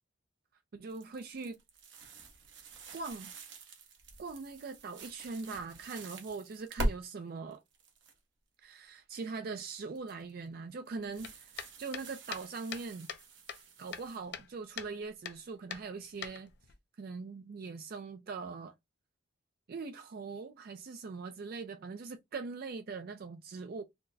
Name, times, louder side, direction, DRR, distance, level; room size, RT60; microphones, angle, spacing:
voice 1, 0.7-1.6 2.9-3.3 4.2-7.6 8.6-13.1 13.8-16.5 17.0-18.7 19.7-23.8, right 4 dB, 50° right, 0.4 m, -41 dB
sound 1, 0.9-7.0 7.5-8.1 10.0-10.3 11.0-14.2, right 1 dB, 65° right, 1.0 m, -42 dB
sound 2, 11.2-13.2 13.5-14.5 14.8-14.9 15.2-15.4 15.7-16.7, left 8 dB, 55° left, 0.5 m, -43 dB
4.2 x 2.0 x 2.6 m
head